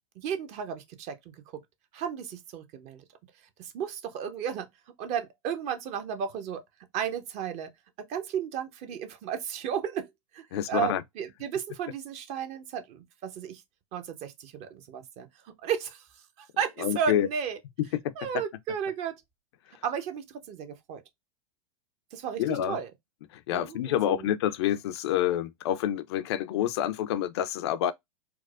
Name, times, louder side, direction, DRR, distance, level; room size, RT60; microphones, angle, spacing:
voice 1, 0.2-1.6 1.9-3.0 3.6-4.7 5.0-6.6 6.9-7.7 8.1-13.6 13.9-16.1 16.4-17.6 18.2-19.2 19.8-21.0 22.1-22.9 23.5-24.3, right 8 dB, 40° right, 0.7 m, -34 dB
voice 2, 10.5-11.0 16.8-17.3 18.0-18.1 22.4-22.8 23.3-27.9, left 11 dB, 55° left, 0.4 m, -28 dB
4.5 x 2.1 x 2.3 m
figure-of-eight pair, 90°, 16 cm